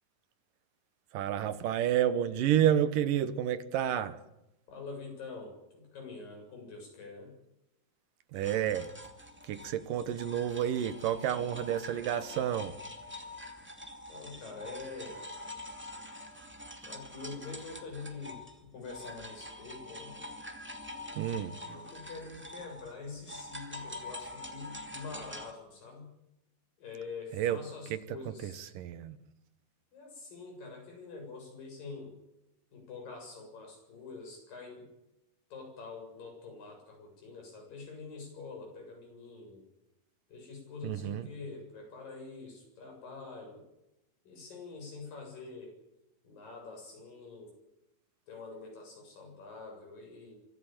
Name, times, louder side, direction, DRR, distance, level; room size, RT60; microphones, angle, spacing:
voice 1, 1.1-4.2 8.3-8.9 9.4-12.8 21.2-21.6 27.3-27.6 27.9-29.2 40.8-41.3, right 10 dB, 75° right, 13 dB, 2.7 m, -30 dB
voice 2, 4.7-7.3 14.1-15.2 16.8-20.2 21.6-26.1 26.8-28.7 29.9-32.1 32.7-34.9 35.5-39.6 40.3-43.6 44.3-45.8 46.2-47.6 48.3-50.4, left 4 dB, 75° left, 2 dB, 9.2 m, -45 dB
sound 1, 8.4-18.6 18.8-25.5, left 1 dB, 5° right, 1.7 m, -45 dB
24.5 x 16.0 x 9.2 m, 0.88 s
omnidirectional pair, 4.0 m